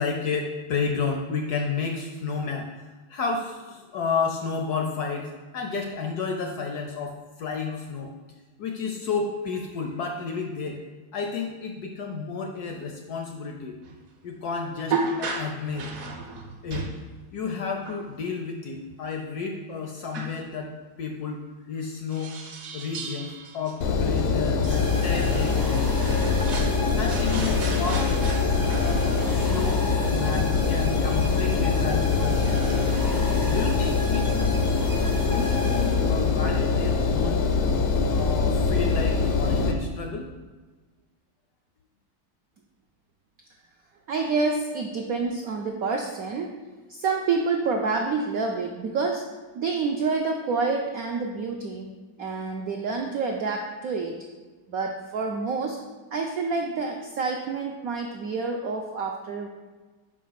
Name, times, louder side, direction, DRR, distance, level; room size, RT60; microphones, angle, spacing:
voice 1, 0.0-2.7 3.1-8.1 8.6-10.8 11.1-13.8 14.2-15.9 16.6-16.9 17.3-20.7 21.0-21.4 21.7-22.3 22.7-26.4 27.0-28.1 28.6-32.9 33.5-34.5 35.3-37.4 38.1-40.3, left 5 dB, 70° left, 3 dB, 0.9 m, -31 dB
sound 1, 13.8-13.9 14.9-17.0 17.8-18.0 20.1-20.4 22.1-25.1 25.5-25.6 25.9-26.8 27.1-28.9, right 4 dB, 60° right, 1.0 m, -34 dB
Engine, 23.8-39.7, left 4 dB, 90° left, 1.6 m, -23 dB
sound 2, 24.6-36.5, left 1 dB, 35° right, 0.3 m, -37 dB
voice 2, 44.1-46.6 46.9-49.3 49.5-51.9 52.2-54.2 54.7-55.8 56.1-59.5, right 4 dB, 80° right, 2 dB, 0.7 m, -28 dB
5.1 x 5.1 x 5.6 m, 1.3 s
omnidirectional pair, 2.2 m